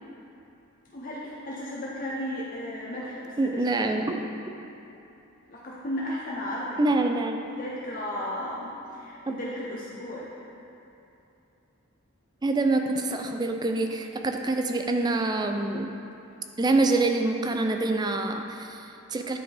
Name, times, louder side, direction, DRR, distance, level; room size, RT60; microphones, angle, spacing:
voice 1, 0.9-3.6 5.5-6.9 7.6-10.3, left 1 dB, 45° left, -5 dB, 0.7 m, -34 dB
voice 2, 3.4-4.5 6.8-7.4 9.3-9.4 12.4-15.9 16.6-19.4, right 2 dB, 20° right, 4 dB, 0.3 m, -26 dB
10.0 x 4.2 x 3.4 m, 2.8 s
head